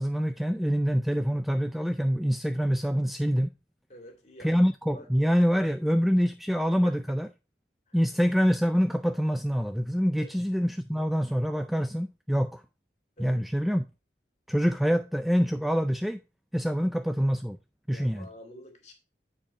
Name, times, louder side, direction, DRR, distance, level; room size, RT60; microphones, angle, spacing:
voice 1, 0.0-3.5 4.4-7.3 7.9-12.6 13.2-13.9 14.5-16.2 16.5-17.6 17.9-18.3, equal, ahead, 0.3 m, -25 dB
voice 2, 3.9-4.5 4.8-5.1 6.8-6.9 7.9-8.0 10.2-10.4 13.2-13.4 17.9-18.9, equal, 40° left, 2.1 m, -48 dB
8.9 x 4.8 x 4.2 m
head